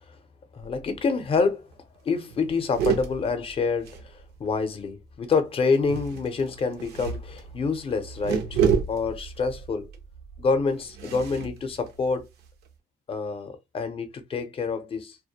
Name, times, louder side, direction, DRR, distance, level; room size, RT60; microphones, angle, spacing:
voice 1, 0.5-1.7 2.0-8.6 8.9-9.9 10.4-12.3 13.1-15.2, left 4 dB, 35° left, 0.6 m, -27 dB
sound 1, 0.6-1.0 1.4-1.5 1.7-2.0 2.3-4.6 5.7-12.7, right 7 dB, 75° right, 0.6 m, -31 dB
2.2 x 2.1 x 2.8 m
cardioid pair, 110°, 17 cm